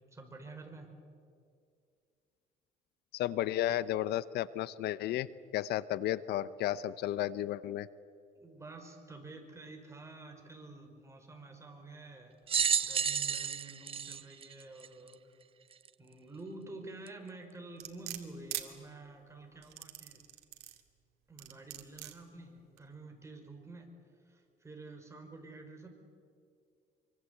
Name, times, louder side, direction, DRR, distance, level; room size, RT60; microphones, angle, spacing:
voice 1, 0.1-0.9 8.3-12.4 12.8-15.2 16.0-20.2 21.3-23.9 24.2-25.9, right 2 dB, 15° right, 3 dB, 5.1 m, -49 dB
voice 2, 3.1-7.9, left 13 dB, 75° left, 17 dB, 0.8 m, -33 dB
sound 1, 12.5-15.1 15.8-15.9 17.1-17.2, right 7 dB, 35° right, 0.7 m, -31 dB
sound 2, 17.8-18.7 19.6-20.8 21.4-22.1 22.8-22.9, right 14 dB, 75° right, 2.3 m, -42 dB
25.5 x 24.5 x 8.3 m, 2.3 s
cardioid pair, 110°, 17 cm